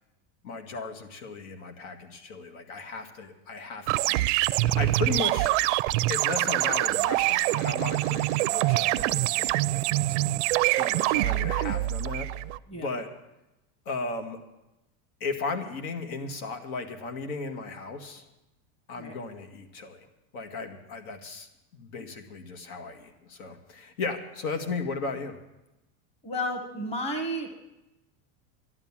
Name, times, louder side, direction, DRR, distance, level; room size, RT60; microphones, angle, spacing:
voice 1, 0.4-4.3 4.8-5.5 6.1-10.4 10.7-12.3 12.8-13.1 13.9-14.4 15.2-18.2 18.9-20.1 20.3-25.4, left 4 dB, 70° left, 6 dB, 2.0 m, -36 dB
sound 1, 3.9-12.6, right 17 dB, 55° right, 0.5 m, -25 dB
voice 2, 26.2-27.5, equal, 15° left, 5 dB, 1.4 m, -32 dB
12.0 x 12.0 x 7.3 m, 0.95 s
supercardioid pair, 165°, 44 cm